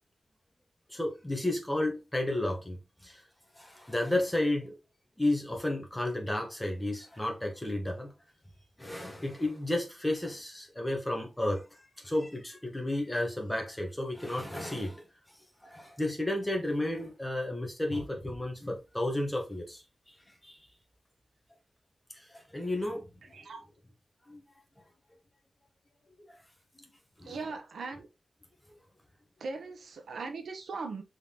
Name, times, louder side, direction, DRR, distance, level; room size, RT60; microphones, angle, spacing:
voice 1, 0.9-3.2 3.6-4.8 5.2-8.1 8.8-15.1 15.6-20.1 20.4-20.6 22.1-23.4 24.3-24.4 26.2-26.4 27.2-27.4, left 1 dB, 10° left, 1.0 m, -32 dB
voice 2, 23.3-23.6 27.2-28.1 29.4-31.0, right 4 dB, 85° right, 0.8 m, -39 dB
3.7 x 3.5 x 2.8 m
wide cardioid pair, 165°, 0 cm